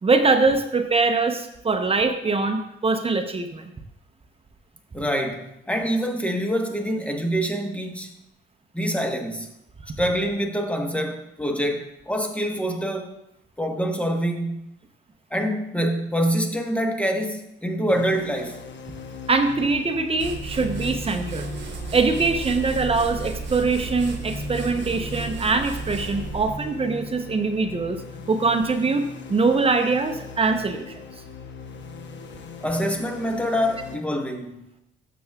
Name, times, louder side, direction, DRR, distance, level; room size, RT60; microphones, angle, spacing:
voice 1, 0.0-3.6 19.3-21.5 21.9-28.0 28.3-30.9, right 4 dB, 30° right, 0.8 m, -23 dB
voice 2, 4.9-8.1 8.7-9.5 10.0-13.1 13.6-14.7 15.3-18.7 32.6-34.7, equal, 5° left, 1.2 m, -25 dB
sound 1, 17.9-34.0, left 4 dB, 65° left, 1.0 m, -39 dB
sound 2, 20.2-26.7, right 5 dB, 65° right, 1.1 m, -34 dB
12.5 x 6.9 x 2.4 m
cardioid pair, 90°, 20 cm